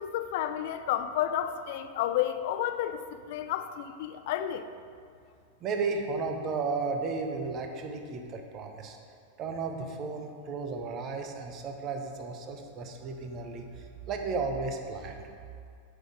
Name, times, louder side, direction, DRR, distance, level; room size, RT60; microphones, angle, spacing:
voice 1, 0.0-4.7, left 11 dB, 50° left, 10 dB, 0.4 m, -31 dB
voice 2, 5.6-9.0 9.4-15.3, right 4 dB, 35° right, 4 dB, 0.8 m, -34 dB
7.8 x 4.0 x 5.1 m, 2.3 s
figure-of-eight pair, 90°, 0 cm